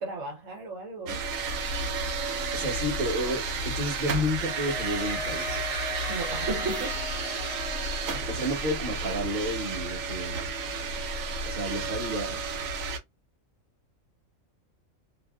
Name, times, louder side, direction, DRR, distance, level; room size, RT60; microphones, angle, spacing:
voice 1, 0.0-1.2 6.1-7.0 9.2-9.5, right 3 dB, 70° right, 1.3 m, -35 dB
sound 1, 1.1-13.0, right 4 dB, 90° right, 1.0 m, -32 dB
voice 2, 2.5-5.6 8.3-10.5 11.5-12.4, equal, 40° right, 1.1 m, -31 dB
sound 2, 4.3-9.7, left 5 dB, 60° left, 0.8 m, -40 dB
2.8 x 2.5 x 2.3 m
omnidirectional pair, 1.4 m